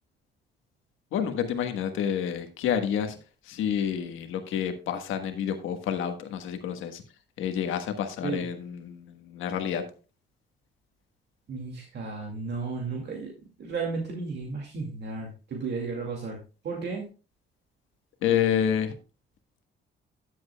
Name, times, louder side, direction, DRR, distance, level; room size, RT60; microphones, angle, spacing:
voice 1, 1.1-3.2 3.4-7.0 7.4-9.8 18.2-18.9, left 8 dB, 90° left, 7 dB, 1.4 m, -29 dB
voice 2, 11.5-13.3 13.6-16.4 16.6-17.1, right 4 dB, 60° right, 0 dB, 2.3 m, -33 dB
13.5 x 7.8 x 2.3 m, 0.33 s
cardioid pair, 90°, 20 cm